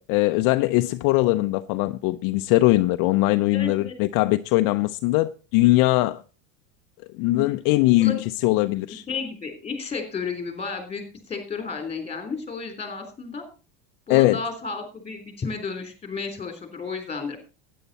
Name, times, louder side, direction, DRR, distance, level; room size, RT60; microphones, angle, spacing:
voice 1, 0.0-6.2 7.2-9.0 14.1-14.4, left 18 dB, 55° left, 0.6 m, -21 dB
voice 2, 3.5-4.0 7.3-7.5 8.0-8.2 9.1-13.4 14.1-17.4, left 5 dB, 15° left, 3.3 m, -32 dB
12.5 x 9.5 x 4.1 m
supercardioid pair, 140°, 39 cm